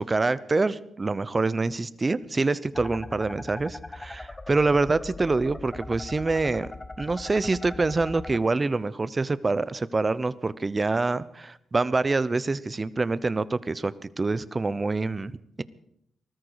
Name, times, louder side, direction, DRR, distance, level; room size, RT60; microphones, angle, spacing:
voice 1, 0.0-6.7 7.0-15.6, right 3 dB, 35° right, 18 dB, 0.8 m, -26 dB
sound 1, 2.7-8.4, left 2 dB, 25° left, 0.8 m, -40 dB
20.0 x 13.5 x 4.8 m, 0.72 s
supercardioid pair, 50°, 0 cm